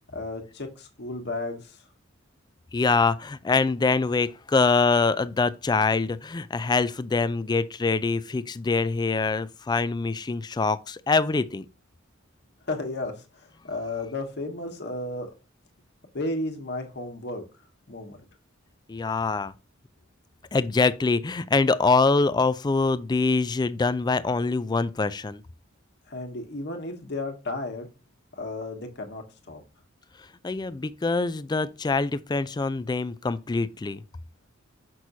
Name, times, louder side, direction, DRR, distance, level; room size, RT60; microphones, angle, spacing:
voice 1, 0.1-1.8 12.6-15.3 16.1-17.4 17.9-18.2 26.1-27.9 28.3-29.6, left 2 dB, 55° left, 1.4 m, -33 dB
voice 2, 2.7-11.7 18.9-19.5 20.5-25.4 30.4-34.0, left 4 dB, 20° left, 0.4 m, -24 dB
6.1 x 6.1 x 2.7 m
head